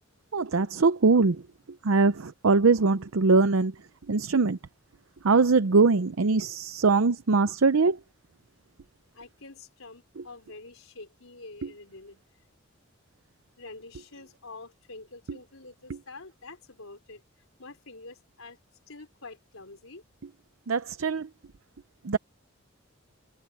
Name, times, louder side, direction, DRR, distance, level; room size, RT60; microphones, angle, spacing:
voice 1, 0.3-1.4 1.8-3.7 4.1-4.6 5.2-8.0 20.7-21.3 22.0-22.2, right 4 dB, 85° right, 0.7 m, -22 dB
voice 2, 9.1-12.2 13.6-17.2 17.6-18.6 18.9-20.0, left 3 dB, 85° left, 4.2 m, -46 dB
head